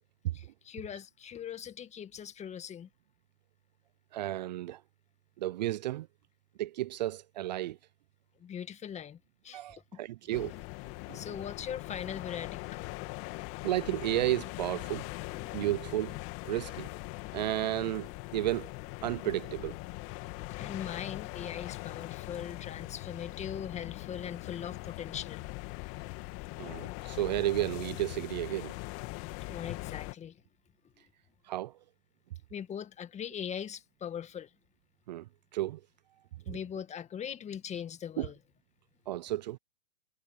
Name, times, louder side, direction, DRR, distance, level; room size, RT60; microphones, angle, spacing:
voice 1, 0.3-2.9 8.4-9.2 9.4-9.6 11.1-12.8 15.4-15.5 20.6-25.5 29.5-30.4 32.5-34.5 36.5-38.4, left 8 dB, 15° left, 2.0 m, -40 dB
voice 2, 4.1-4.8 5.4-6.1 6.6-7.8 9.5-10.5 11.1-11.3 13.6-15.0 15.5-16.2 16.4-16.9 17.3-18.7 19.0-19.8 26.6-28.7 31.5-31.7 35.1-35.3 35.5-35.8 36.5-36.6 38.2-38.3 39.1-39.6, right 14 dB, 35° right, 0.4 m, -32 dB
sound 1, 10.3-30.1, left 24 dB, 35° left, 2.4 m, -41 dB
hypercardioid pair, 125°, 40 cm